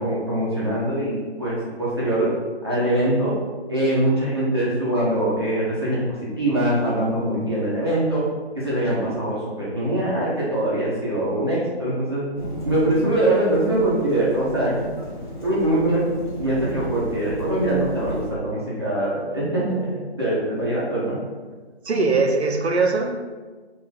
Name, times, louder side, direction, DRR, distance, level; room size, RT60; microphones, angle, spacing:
voice 1, 0.0-2.3 2.6-3.3 3.7-8.2 8.6-12.2 12.6-14.8 15.4-16.0 16.4-19.8 20.2-21.2 21.9-22.0, right 1 dB, 25° right, 0.6 m, -23 dB
Thunderstorm / Rain, 12.4-18.3, equal, 45° left, 1.0 m, -34 dB
voice 2, 21.8-23.2, right 3 dB, 75° right, 0.7 m, -21 dB
4.0 x 2.5 x 4.1 m
figure-of-eight pair, 160°, 33 cm